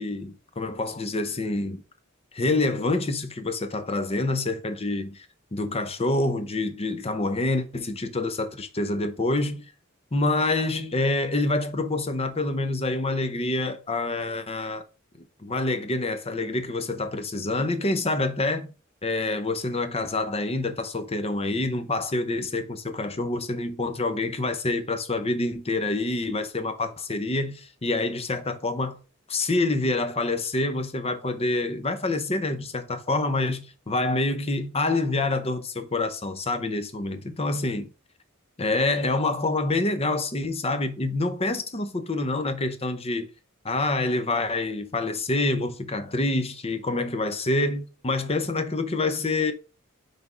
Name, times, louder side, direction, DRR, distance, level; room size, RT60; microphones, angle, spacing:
voice 1, 0.0-1.8 2.3-5.3 5.5-9.6 10.1-14.8 15.4-18.7 19.0-29.0 29.3-37.9 38.6-43.3 43.6-49.5, left 2 dB, 30° left, 0.8 m, -27 dB
6.0 x 3.5 x 5.1 m
head